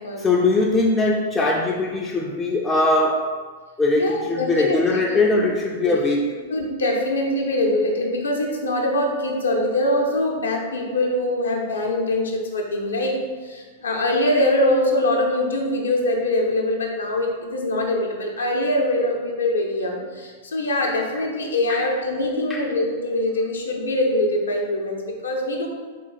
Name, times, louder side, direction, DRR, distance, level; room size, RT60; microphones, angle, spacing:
voice 1, 0.2-3.3 3.8-6.3 21.7-21.8 22.5-22.7, left 2 dB, 15° left, -2 dB, 0.3 m, -21 dB
voice 2, 4.0-5.5 5.8-6.0 6.5-25.7, left 1 dB, 70° left, 1 dB, 0.6 m, -23 dB
3.9 x 2.5 x 3.9 m, 1.5 s
figure-of-eight pair, 100°, 0 cm